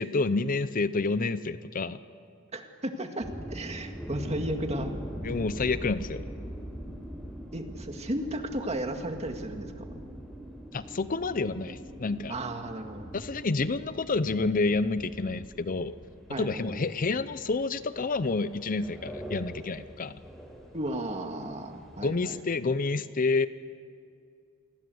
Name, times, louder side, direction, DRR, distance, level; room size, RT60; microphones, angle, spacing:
voice 1, 0.0-2.0 5.2-6.2 10.7-12.4 13.1-15.9 16.4-20.2 22.0-23.5, left 3 dB, 40° left, 14 dB, 0.6 m, -29 dB
voice 2, 2.5-4.9 7.5-9.9 12.3-13.2 16.3-16.9 20.7-22.4, right 1 dB, 30° right, 5 dB, 2.0 m, -34 dB
sound 1, 3.2-22.3, equal, ahead, 5.4 m, -42 dB
28.0 x 20.0 x 7.9 m, 2.4 s
head